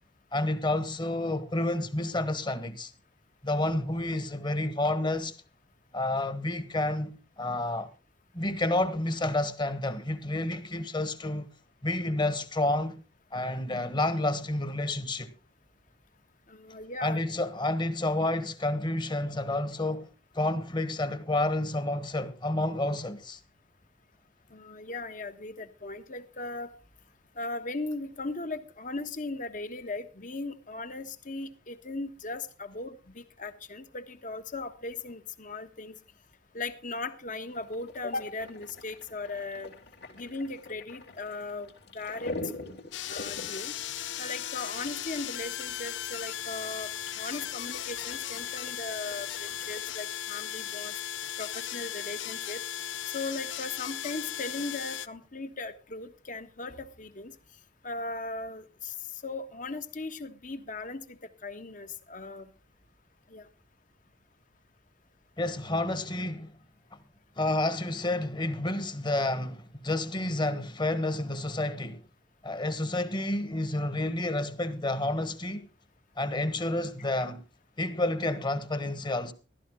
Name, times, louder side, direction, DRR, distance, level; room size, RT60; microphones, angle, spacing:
voice 1, 0.3-2.9 3.4-5.3 5.9-7.9 8.3-11.5 11.8-13.0 13.3-15.3 17.0-20.1 20.3-23.4 65.4-66.5 66.9-67.0 67.4-72.0 72.4-75.7 76.2-77.4 77.8-79.3, left 2 dB, 25° left, 1.4 m, -30 dB
voice 2, 16.5-17.2 24.5-26.7 27.3-35.9 36.5-39.7 40.1-42.3 42.7-42.8 43.1-43.8 44.2-46.9 47.2-50.9 51.4-52.6 53.1-57.3 57.8-58.9 59.2-62.5 63.3-63.5, left 3 dB, 45° left, 1.4 m, -38 dB
sound 1, 37.5-49.9, left 2 dB, 65° left, 3.2 m, -45 dB
sound 2, 42.9-55.1, left 11 dB, 85° left, 0.7 m, -37 dB
14.5 x 13.0 x 3.8 m
head